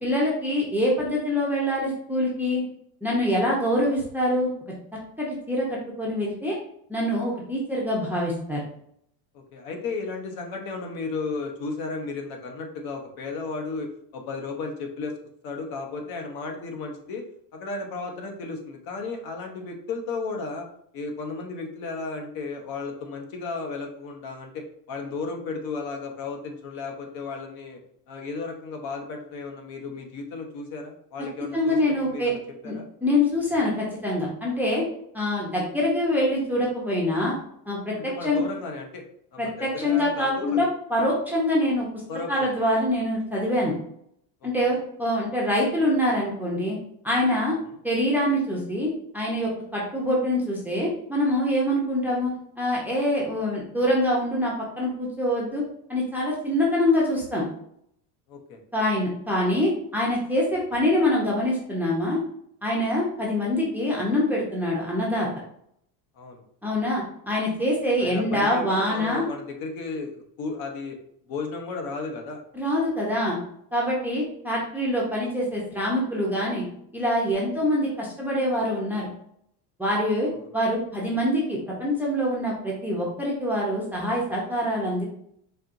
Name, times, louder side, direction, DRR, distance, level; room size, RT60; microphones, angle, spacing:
voice 1, 0.0-2.6 3.0-4.5 5.2-6.6 6.9-8.6 31.5-32.3 32.6-32.7 33.0-34.8 35.1-37.3 37.7-37.9 38.2-38.4 39.4-41.9 42.3-43.7 44.4-46.8 47.0-47.6 47.8-52.3 52.6-57.4 58.7-62.2 62.6-65.3 66.6-69.2 72.5-73.4 73.7-76.6 76.9-79.1 79.8-85.0, left 1 dB, 5° right, -4 dB, 0.6 m, -25 dB
voice 2, 9.3-15.1 15.4-17.2 17.5-20.7 20.9-27.8 28.1-32.4 32.6-32.9 38.0-39.0 39.3-40.7 42.1-42.5 44.4-44.8 58.3-58.6 66.2-66.4 68.0-70.9 71.3-72.4 80.3-80.5, left 4 dB, 50° left, 3 dB, 0.8 m, -34 dB
4.3 x 2.8 x 2.5 m, 0.70 s
cardioid pair, 150°, 47 cm